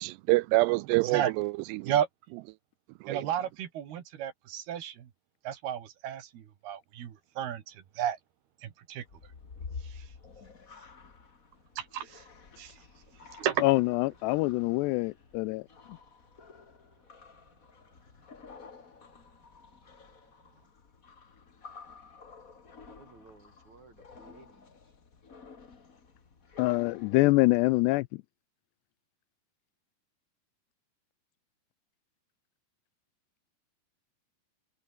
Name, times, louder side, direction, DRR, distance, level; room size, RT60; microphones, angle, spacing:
voice 1, 0.0-1.9 3.0-3.3, right 22 dB, 85° right, 2.6 m, -27 dB
voice 2, 3.1-5.1 5.5-8.2 8.6-9.1 9.8-10.0 11.8-12.2 12.6-12.7 13.4-13.6, right 10 dB, 70° right, 3.9 m, -33 dB
sound 1, 9.0-27.8, left 5 dB, 40° left, 1.2 m, -51 dB
voice 3, 13.6-15.6 26.6-28.2, left 22 dB, 85° left, 2.7 m, -25 dB
voice 4, 22.5-24.9, right 4 dB, 40° right, 7.9 m, -58 dB
omnidirectional pair, 4.9 m